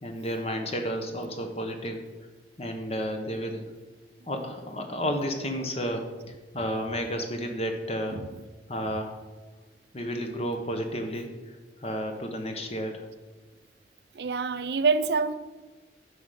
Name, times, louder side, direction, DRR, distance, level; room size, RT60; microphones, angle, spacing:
voice 1, 0.0-2.0 2.6-3.6 4.3-6.0 6.5-8.2 8.7-9.2 9.9-11.3 11.8-13.0, equal, 35° left, 4 dB, 1.2 m, -31 dB
voice 2, 14.2-15.3, right 4 dB, 60° right, 12 dB, 0.5 m, -25 dB
9.8 x 4.9 x 6.8 m, 1.2 s
head